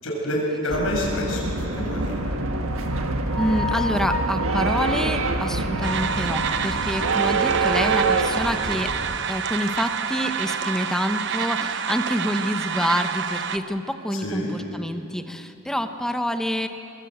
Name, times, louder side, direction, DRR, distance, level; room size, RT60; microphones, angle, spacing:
voice 1, 0.0-2.5 7.8-8.0 14.2-14.6, left 1 dB, 65° left, -2 dB, 7.1 m, -28 dB
sound 1, 0.7-9.2, right 3 dB, 70° right, 1.5 m, -25 dB
voice 2, 3.4-8.9 9.3-16.7, equal, ahead, 7 dB, 1.0 m, -27 dB
sound 2, 5.8-13.6, right 7 dB, 55° right, 0.8 m, -28 dB
25.0 x 21.5 x 8.0 m, 2.9 s
head